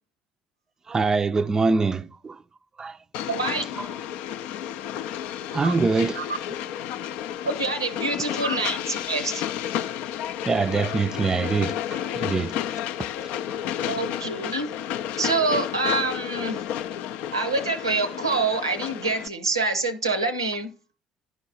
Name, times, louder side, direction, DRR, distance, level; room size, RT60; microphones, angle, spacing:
voice 1, 0.9-2.4 2.8-3.0 5.5-6.2 10.5-12.6, right 4 dB, 25° right, 0.4 m, -24 dB
Train, 3.1-19.3, left 10 dB, 65° left, 0.3 m, -32 dB
voice 2, 3.3-3.9 5.6-5.8 6.1-6.3 7.4-9.5 13.9-14.7 15.2-16.6 17.3-20.7, right 3 dB, 90° right, 0.6 m, -26 dB
11.0 x 4.6 x 4.1 m
figure-of-eight pair, 55°, 2 cm